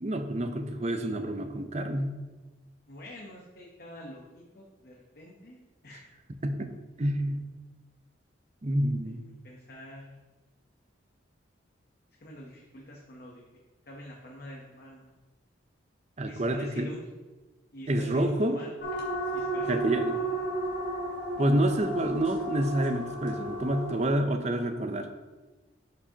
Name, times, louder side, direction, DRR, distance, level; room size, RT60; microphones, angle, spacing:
voice 1, 0.0-2.1 6.4-6.7 7.0-7.4 8.6-9.2 16.2-16.9 17.9-18.6 19.7-20.2 21.4-25.1, right 1 dB, 35° right, 7 dB, 0.5 m, -28 dB
voice 2, 2.9-6.0 9.4-10.2 12.2-13.4 13.9-15.1 16.2-17.0 17.7-18.7 19.3-20.2, left 1 dB, 50° left, -1 dB, 0.9 m, -46 dB
sound 1, 18.8-24.1, right 2 dB, 65° left, 2.3 m, -33 dB
12.0 x 4.9 x 2.9 m, 1.2 s
head